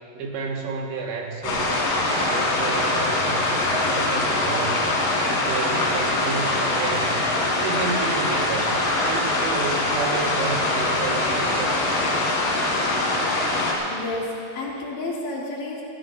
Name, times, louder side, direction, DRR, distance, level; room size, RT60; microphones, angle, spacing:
voice 1, 0.1-4.9 5.3-7.2 7.6-8.8 9.0-12.1, right 4 dB, 90° right, 0 dB, 3.8 m, -31 dB
sound 1, 1.4-13.7, left 2 dB, 55° left, 3.8 m, -23 dB
voice 2, 13.9-15.8, left 2 dB, 85° left, -4 dB, 4.5 m, -31 dB
28.0 x 14.5 x 2.6 m, 2.4 s
omnidirectional pair, 5.0 m